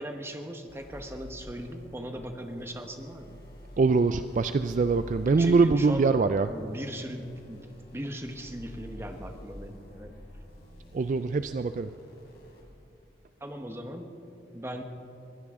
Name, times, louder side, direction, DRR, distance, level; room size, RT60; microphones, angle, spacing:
voice 1, 0.0-3.4 5.3-6.1 6.5-10.1 13.4-14.1 14.5-14.8, equal, 15° right, 5 dB, 1.0 m, -38 dB
sound 1, 0.7-12.6, equal, 60° left, 3.9 m, -48 dB
voice 2, 3.8-6.5 10.9-11.9, right 4 dB, 45° right, 11 dB, 0.3 m, -23 dB
23.0 x 15.5 x 3.7 m, 2.8 s
head